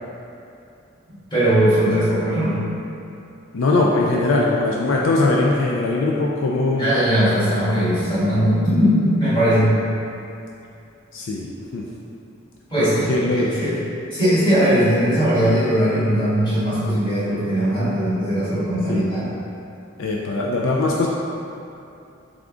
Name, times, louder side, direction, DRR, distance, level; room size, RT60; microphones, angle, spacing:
voice 1, 1.1-2.6 6.7-9.8 12.7-13.1 13.3-13.7 14.1-19.3, equal, 25° left, -12 dB, 1.5 m, -19 dB
voice 2, 3.5-6.9 11.1-11.5 11.7-11.8 12.8-13.5 18.9-19.1 20.0-21.1, left 2 dB, 70° left, -3 dB, 0.4 m, -20 dB
3.6 x 3.5 x 3.7 m, 2.7 s
head